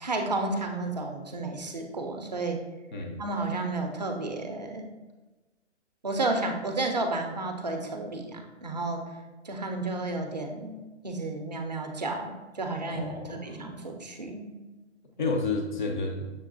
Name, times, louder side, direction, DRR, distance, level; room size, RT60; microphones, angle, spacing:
voice 1, 0.0-2.6 3.2-4.9 6.0-9.1 9.4-10.8 11.0-14.5, right 2 dB, 35° right, 4 dB, 0.4 m, -32 dB
voice 2, 2.9-3.2 12.9-13.6 15.2-16.3, left 3 dB, 40° left, 2 dB, 0.6 m, -31 dB
6.5 x 2.8 x 2.5 m, 1.2 s
hypercardioid pair, 165°, 37 cm